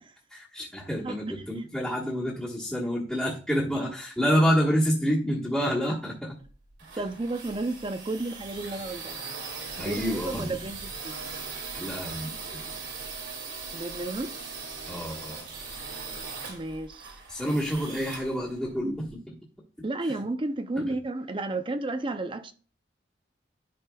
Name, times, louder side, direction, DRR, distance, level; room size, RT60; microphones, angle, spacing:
voice 1, 0.3-6.3 9.8-10.6 11.7-12.7 14.8-15.5 17.3-19.3 20.8-21.0, equal, 5° left, 1.3 m, -28 dB
sound 1, 6.4-19.1, right 4 dB, 80° right, 2.2 m, -40 dB
voice 2, 7.0-9.3 9.8-11.3 13.7-14.3 16.5-17.2 19.8-22.5, right 2 dB, 25° right, 0.5 m, -32 dB
11.0 x 5.0 x 2.3 m
head